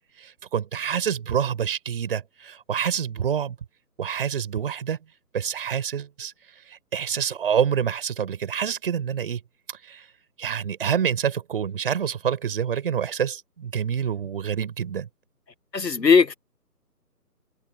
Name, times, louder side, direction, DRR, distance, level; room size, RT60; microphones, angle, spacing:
voice 1, 0.2-3.6 4.0-5.0 5.3-6.3 6.7-9.4 9.8-10.1 10.4-15.1, right 8 dB, 35° right, 6.2 m, -27 dB
voice 2, 15.7-16.3, left 5 dB, 90° left, 1.8 m, -18 dB
open air
figure-of-eight pair, 160°, 49 cm